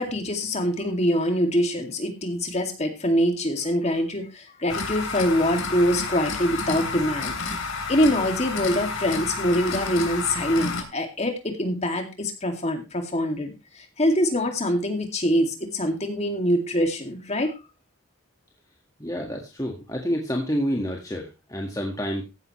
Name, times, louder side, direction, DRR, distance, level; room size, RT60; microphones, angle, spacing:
voice 1, 0.0-7.3 7.9-17.5, equal, 30° left, 5 dB, 2.3 m, -24 dB
sound 1, 4.7-10.8, left 4 dB, 70° left, 3.0 m, -30 dB
voice 2, 19.0-22.2, equal, 15° left, 0 dB, 1.7 m, -28 dB
15.0 x 10.5 x 3.2 m, 0.26 s
head